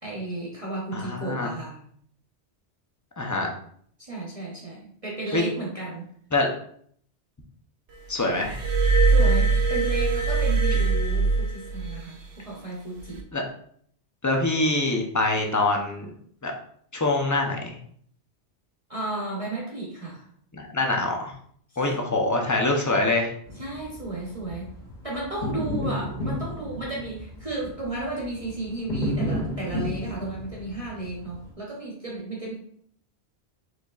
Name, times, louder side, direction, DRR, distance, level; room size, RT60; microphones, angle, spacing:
voice 1, 0.0-1.8 4.0-6.0 9.1-13.2 18.9-20.2 23.6-24.7 25.0-32.5, right 2 dB, 35° right, -5 dB, 1.0 m, -33 dB
voice 2, 0.9-1.5 3.2-3.5 5.3-5.4 6.3-6.5 8.1-8.6 13.3-13.4 14.2-16.1 16.4-16.5 16.9-17.8 20.5-21.3 21.8-23.3, left 2 dB, 20° left, 1 dB, 0.5 m, -24 dB
Glass, 8.4-12.0 13.0-13.2, right 4 dB, 80° right, 1.0 m, -22 dB
sound 1, 23.5-31.5, left 1 dB, 45° left, 1.9 m, -33 dB
4.8 x 4.0 x 2.4 m, 0.62 s
omnidirectional pair, 1.2 m